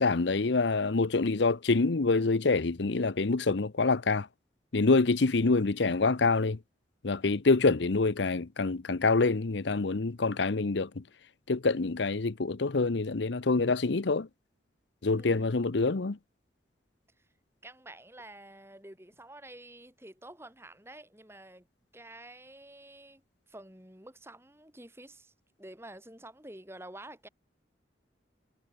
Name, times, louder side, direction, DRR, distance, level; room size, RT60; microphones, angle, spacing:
voice 1, 0.0-4.3 4.7-6.6 7.0-11.0 11.5-14.3 15.0-16.2, left 3 dB, 70° left, 0.8 m, -26 dB
voice 2, 15.2-15.6 17.6-21.7 21.9-23.2 23.5-25.3 25.6-27.3, right 1 dB, 15° right, 3.4 m, -49 dB
head